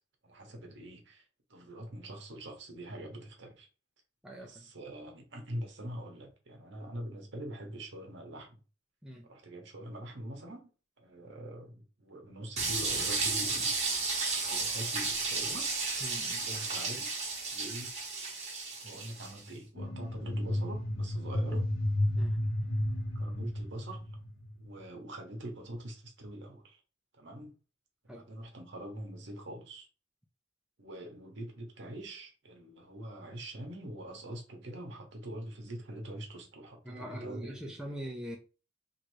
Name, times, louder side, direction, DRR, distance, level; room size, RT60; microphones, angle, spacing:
voice 1, 0.2-3.7 4.3-8.6 9.2-10.7 11.0-13.7 14.4-15.7 16.4-17.1 17.5-17.9 18.8-21.7 23.1-24.2 24.6-26.8 27.1-27.5 28.0-29.9 30.8-38.0, right 1 dB, 65° right, 0.9 m, -44 dB
voice 2, 4.2-4.7 9.0-9.3 16.0-16.4 22.2-22.4 28.1-28.2 36.9-38.4, equal, 5° right, 0.4 m, -42 dB
sound 1, 12.6-19.4, right 4 dB, 35° right, 0.9 m, -33 dB
sound 2, 19.8-24.8, left 1 dB, 85° left, 0.6 m, -32 dB
3.1 x 2.6 x 3.1 m
head